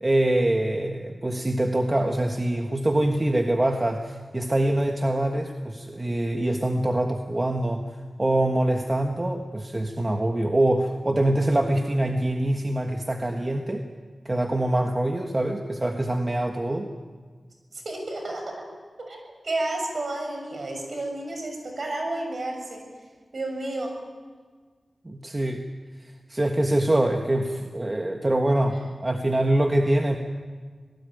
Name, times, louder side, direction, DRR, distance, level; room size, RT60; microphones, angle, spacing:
voice 1, 0.0-7.9 8.2-13.8 14.2-16.9 25.0-25.6 26.3-30.2, right 1 dB, 25° right, 3 dB, 1.4 m, -24 dB
voice 2, 17.7-18.5 19.0-22.8 23.3-23.9, right 2 dB, 55° right, 3 dB, 6.7 m, -31 dB
25.5 x 18.5 x 9.1 m, 1.5 s
wide cardioid pair, 120°, 0 cm